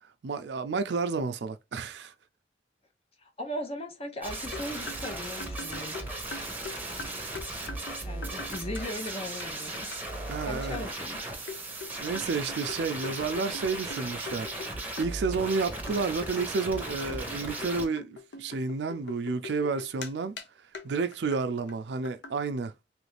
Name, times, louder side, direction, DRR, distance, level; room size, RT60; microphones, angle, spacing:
voice 1, 0.2-2.1 10.3-10.8 12.0-20.4 20.8-22.7, right 4 dB, 75° right, 0.4 m, -31 dB
voice 2, 3.2-5.9 8.0-9.9 10.4-11.2, left 1 dB, 35° left, 0.7 m, -38 dB
sound 1, 4.2-17.9, right 2 dB, 10° right, 0.8 m, -37 dB
sound 2, 4.5-9.1 9.4-9.5 9.7-10.0 10.7-10.9 11.5-14.7 15.0-15.6 15.9-20.1 20.4-20.5 20.7-20.9 21.1-21.4 21.7-21.8 22.0-22.3, left 3 dB, 80° left, 0.6 m, -42 dB
3.1 x 2.5 x 3.2 m
head